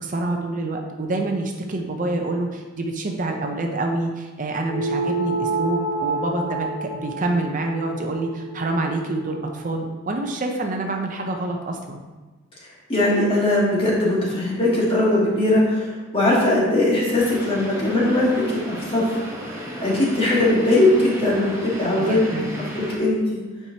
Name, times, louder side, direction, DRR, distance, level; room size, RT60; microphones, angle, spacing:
voice 1, 0.0-12.0 22.0-22.5, right 2 dB, 40° right, 3 dB, 0.6 m, -27 dB
sound 1, 4.7-9.5, right 2 dB, 85° left, 2.1 m, -28 dB
voice 2, 12.9-15.9 16.1-19.1 19.8-22.4 22.8-23.4, left 1 dB, 30° left, -5 dB, 1.6 m, -20 dB
sound 2, 17.2-23.0, right 1 dB, 15° right, 1.0 m, -34 dB
8.7 x 4.6 x 2.8 m, 1.2 s
head